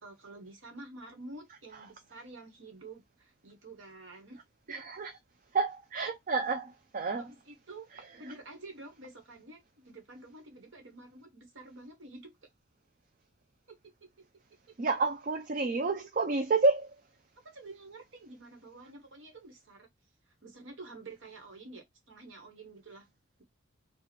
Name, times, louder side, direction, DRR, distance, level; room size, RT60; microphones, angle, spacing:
voice 1, 0.0-4.4 4.7-4.8 7.2-7.9 8.1-12.3 13.7-14.2 14.7-14.8 17.4-19.9 20.4-23.1, right 2 dB, 70° right, 1.2 m, -49 dB
voice 2, 4.7-5.1 5.5-7.3 14.8-16.9, right 3 dB, 40° right, 0.4 m, -29 dB
3.1 x 2.3 x 4.0 m
head